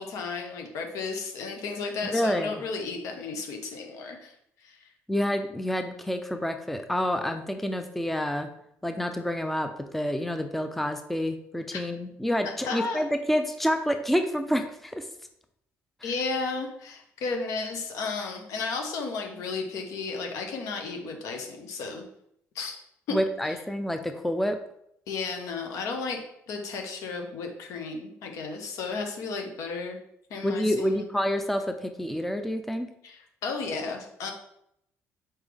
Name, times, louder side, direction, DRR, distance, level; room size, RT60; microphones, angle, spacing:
voice 1, 0.0-4.3 4.6-4.9 11.7-11.8 12.4-13.0 16.0-22.1 22.5-22.8 23.1-23.2 23.4-23.5 25.1-26.2 26.5-30.0 30.3-31.0 33.0-34.3, left 4 dB, 75° left, 3 dB, 1.0 m, -33 dB
voice 2, 2.1-2.6 5.1-8.5 8.8-15.1 16.0-16.1 23.1-24.6 30.4-32.9, equal, 5° left, 6 dB, 0.4 m, -28 dB
4.4 x 3.5 x 3.4 m, 0.75 s
supercardioid pair, 85°, 6 cm